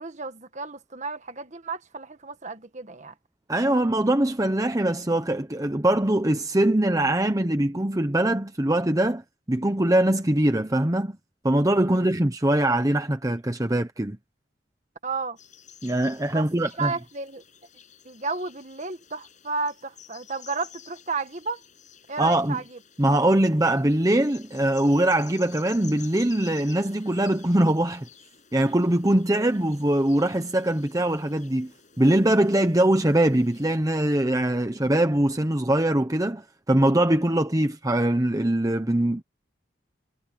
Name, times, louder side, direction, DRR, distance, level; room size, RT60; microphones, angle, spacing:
voice 1, 0.0-3.1 11.8-12.1 15.0-15.4 16.3-16.5 16.8-17.4 18.0-21.6 22.1-22.8, right 4 dB, 40° right, 1.6 m, -32 dB
voice 2, 3.5-9.2 9.5-11.2 11.4-14.2 15.8-16.9 22.2-22.6 23.0-28.1 28.5-31.7 32.0-39.2, right 1 dB, 20° right, 1.0 m, -22 dB
sound 1, 15.4-33.7, left 8 dB, 40° left, 7.1 m, -51 dB
head